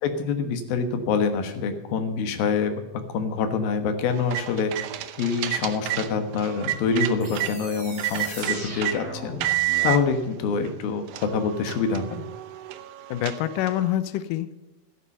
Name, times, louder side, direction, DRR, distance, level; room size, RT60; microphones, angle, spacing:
voice 1, 0.0-2.8 3.1-4.9 5.2-9.4 9.8-12.1, left 5 dB, 70° left, 7 dB, 3.0 m, -26 dB
sound 1, 4.1-7.5 8.0-9.0 9.4-10.0 10.7-10.8 11.1-13.9, right 15 dB, 75° right, 2.2 m, -30 dB
sound 2, 7.2-10.1, right 1 dB, 35° right, 6.8 m, -38 dB
voice 2, 13.1-14.5, left 12 dB, 85° left, 13 dB, 1.9 m, -26 dB
12.0 x 11.5 x 5.5 m, 1.1 s
omnidirectional pair, 4.8 m